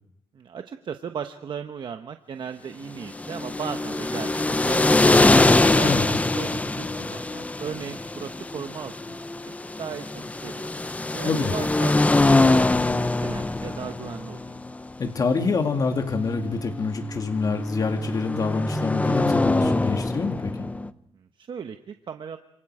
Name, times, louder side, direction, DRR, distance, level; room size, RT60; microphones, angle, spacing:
voice 1, 0.3-5.3 5.7-10.7 11.1-14.6 21.1-22.4, right 7 dB, 50° right, 7 dB, 1.1 m, -37 dB
sound 1, 3.0-20.9, left 2 dB, 15° left, 0.8 m, -23 dB
voice 2, 11.2-11.5 15.0-20.6, left 4 dB, 40° left, 4 dB, 2.6 m, -26 dB
28.0 x 27.0 x 5.0 m, 0.77 s
cardioid pair, 120°, 10 cm